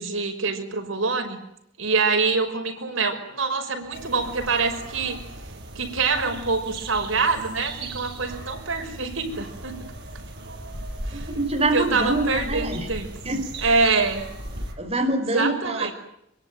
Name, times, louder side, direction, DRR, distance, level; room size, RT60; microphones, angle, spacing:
voice 1, 0.0-1.4 1.8-5.2 5.8-9.9 11.1-11.3 11.7-13.1 13.6-14.2 15.3-15.9, right 4 dB, 85° right, 4 dB, 5.8 m, -25 dB
sound 1, 3.9-14.7, right 2 dB, 60° right, 5.7 m, -37 dB
voice 2, 11.1-12.9 13.2-13.8 14.8-15.9, right 2 dB, 30° right, 2 dB, 4.9 m, -25 dB
25.5 x 23.0 x 9.3 m, 0.78 s
head